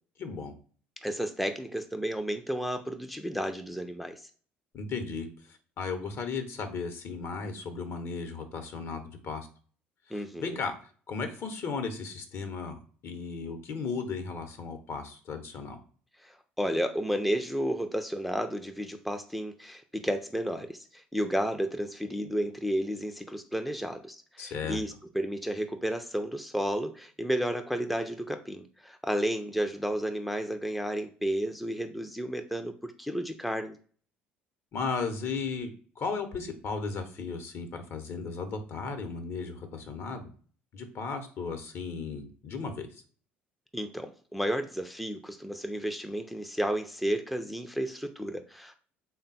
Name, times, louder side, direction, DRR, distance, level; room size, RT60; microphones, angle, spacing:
voice 1, 0.2-0.5 4.7-9.5 10.1-15.8 24.4-24.8 34.7-35.7 36.0-40.3 40.7-43.0, left 4 dB, 50° left, 7 dB, 0.8 m, -35 dB
voice 2, 1.0-4.2 10.1-10.6 16.2-33.8 43.7-48.8, equal, ahead, 6 dB, 0.5 m, -32 dB
3.6 x 2.2 x 4.1 m, 0.42 s
hypercardioid pair, 60°, 5 cm